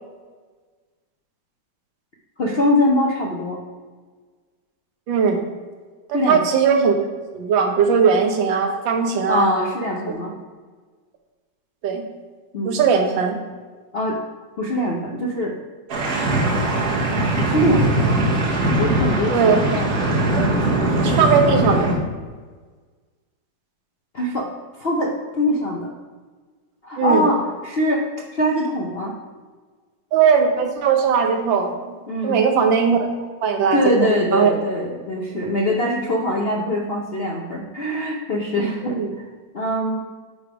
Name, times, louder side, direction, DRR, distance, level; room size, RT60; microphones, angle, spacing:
voice 1, 2.4-3.6 6.1-6.4 9.3-10.3 12.5-12.8 13.9-14.2 14.6-15.5 17.4-18.4 18.8-19.9 24.1-24.5 24.7-25.9 26.8-28.1 28.3-29.1 32.1-32.4 33.5-39.3 39.5-40.0, left 1 dB, 60° left, -1 dB, 0.6 m, -23 dB
voice 2, 5.1-5.4 6.1-7.0 7.3-9.5 11.8-12.0 12.7-13.4 19.3-19.6 21.0-22.1 27.0-27.3 30.1-31.8 32.2-33.0 33.4-34.5 38.8-39.1, right 6 dB, 85° right, 4 dB, 1.6 m, -19 dB
FX - vehiculos, 15.9-21.9, right 2 dB, 60° right, 1.5 m, -20 dB
9.0 x 3.5 x 5.0 m, 1.4 s
omnidirectional pair, 2.0 m